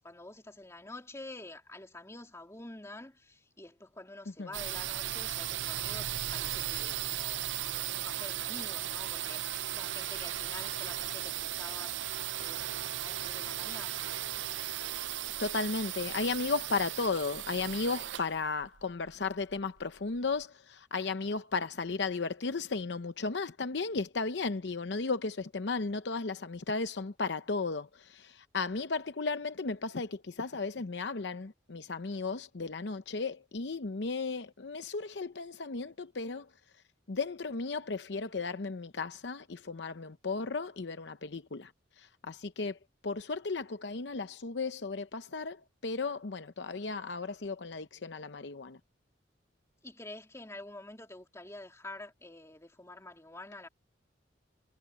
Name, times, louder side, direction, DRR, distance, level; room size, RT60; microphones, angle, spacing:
voice 1, 0.0-14.1 49.8-53.7, left 2 dB, 15° left, 3.0 m, -48 dB
sound 1, 4.5-20.2, right 12 dB, 75° right, 0.6 m, -36 dB
voice 2, 15.4-36.5 37.1-48.8, left 4 dB, 65° left, 0.7 m, -35 dB
head